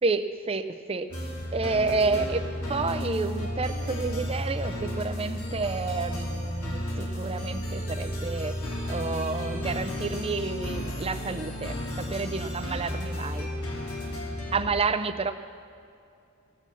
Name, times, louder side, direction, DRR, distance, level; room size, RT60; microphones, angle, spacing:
voice 1, 0.0-1.1 1.5-2.4 2.7-8.5 8.9-13.5 14.5-15.3, right 4 dB, 25° right, 10 dB, 0.6 m, -30 dB
sound 1, 1.1-14.6, equal, 85° left, 2.8 m, -33 dB
16.5 x 8.4 x 7.0 m, 2.5 s
head